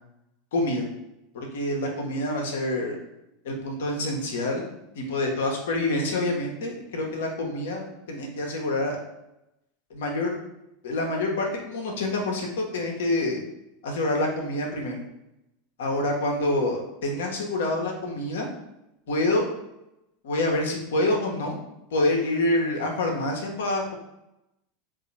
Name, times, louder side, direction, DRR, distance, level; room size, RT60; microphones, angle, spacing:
voice 1, 0.5-0.9 1.3-3.0 3.4-4.7 5.0-9.0 9.9-10.4 10.8-13.4 13.8-15.0 15.8-18.5 19.1-19.5 20.2-21.6 21.9-23.9, left 2 dB, 65° left, 1 dB, 1.0 m, -27 dB
3.8 x 2.7 x 4.1 m, 0.89 s
figure-of-eight pair, 85°, 0 cm